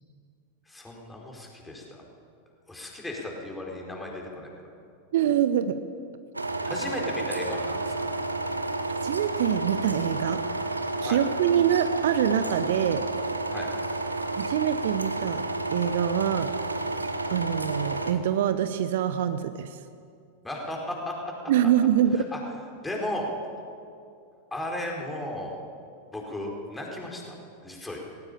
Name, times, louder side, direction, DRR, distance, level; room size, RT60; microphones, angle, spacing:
voice 1, 0.7-2.0 2.7-4.5 6.6-8.1 11.0-11.2 13.5-13.7 20.4-21.5 22.3-22.4 22.8-23.3 24.5-25.6 26.1-27.3 27.6-28.0, left 1 dB, 10° left, -1 dB, 4.6 m, -35 dB
voice 2, 5.1-5.8 9.0-10.4 11.0-13.0 14.4-15.4 15.7-16.5 17.3-19.8 21.5-22.2, right 10 dB, 55° right, 11 dB, 0.8 m, -25 dB
sound 1, 6.3-18.1, right 2 dB, 80° right, 1.3 m, -31 dB
18.5 x 17.0 x 8.6 m, 2.4 s
figure-of-eight pair, 90°, 0 cm